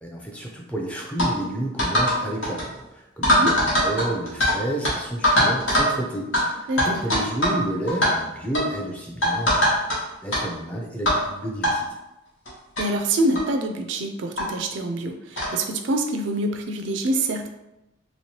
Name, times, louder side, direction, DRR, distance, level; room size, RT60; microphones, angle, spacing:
voice 1, 0.0-9.9 10.2-11.9, right 1 dB, 5° left, -2 dB, 0.5 m, -30 dB
sound 1, 1.2-1.3 1.8-2.2 2.4-2.6 3.2-4.5 4.8-4.9 5.2-5.9 6.3-6.4 6.8-7.6 7.9-8.1 8.5-8.7 9.2-10.0 10.3-10.4 11.1-11.2 11.6-11.7 12.5-12.6 12.8-12.9 13.3-13.5 14.4-14.5 15.4-15.6, equal, 75° left, 1.2 m, -20 dB
voice 2, 3.2-3.5 6.7-7.0 12.8-17.5, right 1 dB, 65° right, 5 dB, 0.4 m, -26 dB
3.1 x 3.0 x 2.8 m, 0.92 s
head